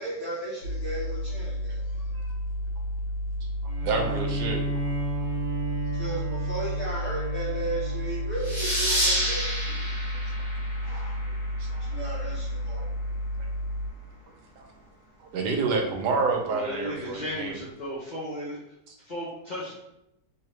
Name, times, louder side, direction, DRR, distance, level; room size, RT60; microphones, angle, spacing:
voice 1, 0.0-2.4 5.1-13.1 14.6-14.7, right 2 dB, 40° left, -12 dB, 1.3 m, -37 dB
sound 1, 0.6-13.9, equal, 85° left, 1.4 m, -31 dB
voice 2, 1.8-2.3 16.5-19.8, equal, 70° left, -6 dB, 0.4 m, -36 dB
Bowed string instrument, 3.7-9.1, right 3 dB, 50° right, 0.6 m, -34 dB
voice 3, 3.8-4.7 11.3-12.0 12.7-12.8 13.4-13.5 14.6-14.7 15.2-17.6, right 4 dB, 75° right, 2 dB, 1.2 m, -29 dB
sound 2, 8.4-11.7, equal, 15° right, 1.3 m, -29 dB
3.3 x 2.9 x 3.0 m, 0.83 s
omnidirectional pair, 1.9 m